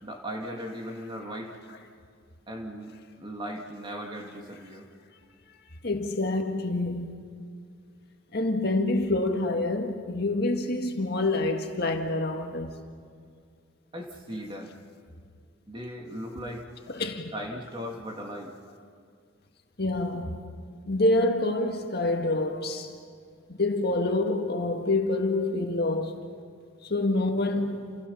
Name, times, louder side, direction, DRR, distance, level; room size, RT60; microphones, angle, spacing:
voice 1, 0.0-1.6 2.5-4.9 13.9-14.7 15.7-16.6 17.3-18.5, equal, 25° right, 2.4 m, -37 dB
voice 2, 5.8-7.1 8.3-12.7 16.9-17.3 19.8-20.4 20.9-22.9 23.5-26.2 26.8-27.9, left 2 dB, 50° left, 1.9 m, -27 dB
29.5 x 29.0 x 5.7 m
head